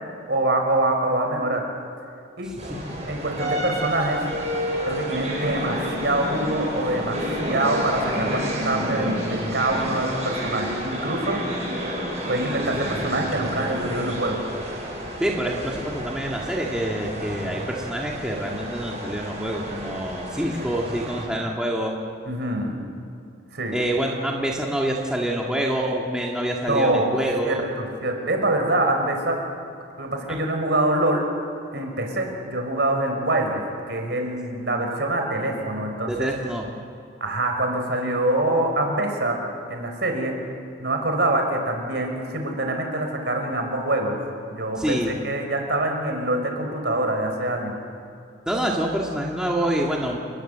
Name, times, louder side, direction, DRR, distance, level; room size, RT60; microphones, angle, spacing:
voice 1, 0.3-1.6 2.4-2.6 3.1-4.2 4.8-11.4 12.3-14.4 22.3-22.8 23.5-23.7 26.7-27.1 27.4-27.7 28.0-29.4 30.0-31.3 31.7-33.6 33.9-36.3 37.2-39.4 39.7-40.4 40.8-44.2 44.5-47.7, right 1 dB, 55° right, 3 dB, 5.0 m, -25 dB
sound 1, 2.6-21.2, equal, 30° right, 7.6 m, -30 dB
voice 2, 15.2-21.9 23.7-27.6 30.3-30.4 36.1-36.7 44.8-45.1 48.5-50.2, right 1 dB, 5° right, -2 dB, 2.0 m, -26 dB
29.5 x 20.5 x 8.1 m, 2.5 s
head